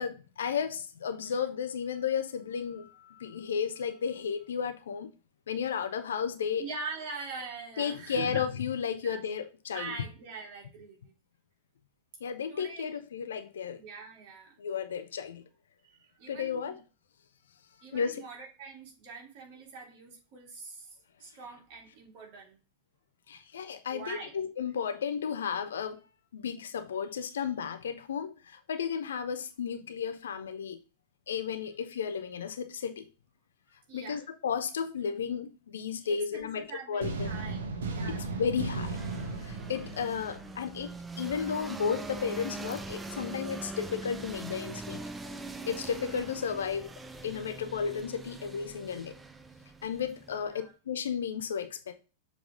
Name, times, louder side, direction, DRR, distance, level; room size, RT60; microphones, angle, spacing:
voice 1, 0.0-5.1 5.5-6.6 7.8-9.9 12.2-13.8 14.6-15.4 16.3-16.8 17.9-18.2 23.3-26.0 26.3-30.8 31.3-33.0 33.9-37.3 38.1-39.0 39.4-45.0 45.7-46.9 47.2-49.1 49.8-51.9, left 7 dB, 65° left, 0.7 m, -33 dB
voice 2, 6.6-8.5 9.0-9.2 9.7-11.1 12.5-13.0 13.7-14.5 15.8-16.8 17.8-22.6 23.9-24.3 33.9-34.2 35.9-38.4 46.0-46.3 50.3-50.7, right 4 dB, 45° right, 2.7 m, -43 dB
sound 1, 37.0-41.0, right 3 dB, 65° right, 1.0 m, -36 dB
sound 2, 38.8-50.6, right 3 dB, 10° right, 0.5 m, -42 dB
7.2 x 3.6 x 3.7 m
figure-of-eight pair, 90°, 0 cm